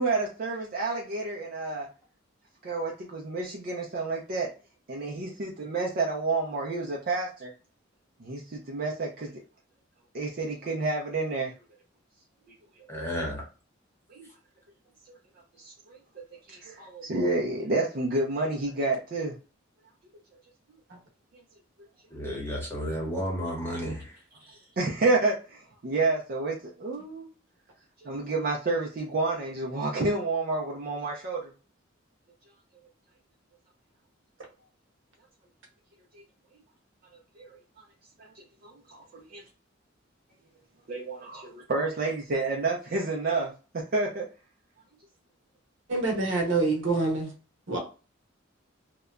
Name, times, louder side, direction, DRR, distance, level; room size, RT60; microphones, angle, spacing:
voice 1, 0.0-1.9 2.6-4.5 4.9-7.5 8.2-9.4 10.1-11.5 14.1-14.3 15.6-16.0 16.5-19.3 24.4-27.3 28.0-31.5 36.1-36.2 37.4-37.5 38.2-39.4 40.9-43.5 43.9-44.3, right 3 dB, 50° right, -1 dB, 0.4 m, -29 dB
voice 2, 12.9-13.4 22.1-24.2, equal, 10° left, -3 dB, 0.9 m, -32 dB
voice 3, 45.9-47.3 47.7-47.8, right 3 dB, 70° right, 0 dB, 0.9 m, -26 dB
2.8 x 2.1 x 2.3 m, 0.34 s
head